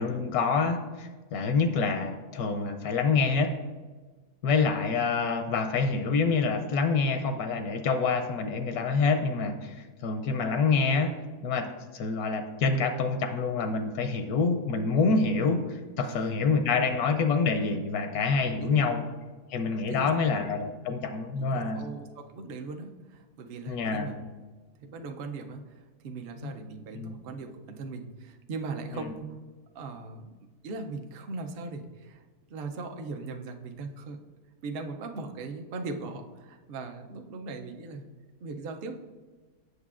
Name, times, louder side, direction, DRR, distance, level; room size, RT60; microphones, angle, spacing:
voice 1, 0.0-3.5 4.4-11.1 11.4-11.7 11.9-19.0 19.5-21.9 23.7-24.1 26.9-27.2 28.9-29.1, left 4 dB, 80° left, 7 dB, 1.1 m, -27 dB
voice 2, 16.0-16.4 18.6-18.9 19.9-20.4 21.4-24.2 24.8-29.3 29.7-30.3 30.6-32.2 32.5-34.2 34.6-38.0 38.4-39.0, right 3 dB, 70° right, 4 dB, 0.5 m, -39 dB
8.1 x 6.4 x 2.4 m, 1.3 s
omnidirectional pair, 1.6 m